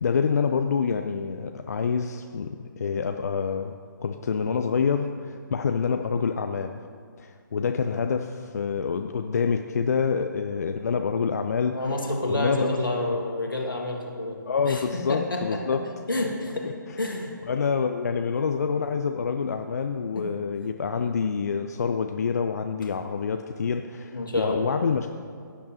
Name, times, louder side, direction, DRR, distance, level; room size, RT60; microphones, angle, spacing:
voice 1, 0.0-3.7 4.0-6.8 7.2-11.8 12.3-12.8 13.0-13.2 14.5-15.9 16.6-17.0 17.5-25.1, left 6 dB, 50° left, 6 dB, 0.5 m, -27 dB
voice 2, 11.7-14.8 15.1-15.6 16.1-17.4 20.2-20.3 24.1-24.8, left 2 dB, 80° left, 1 dB, 1.9 m, -29 dB
16.5 x 8.3 x 2.9 m, 2.3 s
figure-of-eight pair, 140°, 11 cm